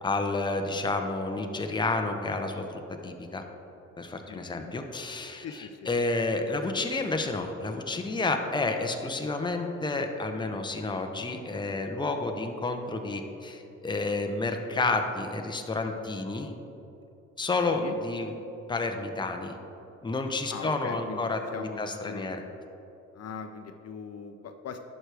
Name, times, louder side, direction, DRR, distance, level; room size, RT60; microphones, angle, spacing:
voice 1, 0.0-3.4 4.0-16.5 17.4-18.3 18.7-19.6 20.0-22.4, left 3 dB, 15° left, 4 dB, 0.7 m, -30 dB
voice 2, 4.3-4.7 5.4-5.9 17.7-18.0 20.5-22.5 23.1-24.8, left 6 dB, 55° left, 6 dB, 0.6 m, -41 dB
11.0 x 6.2 x 3.4 m, 2.9 s
cardioid pair, 90°, 30 cm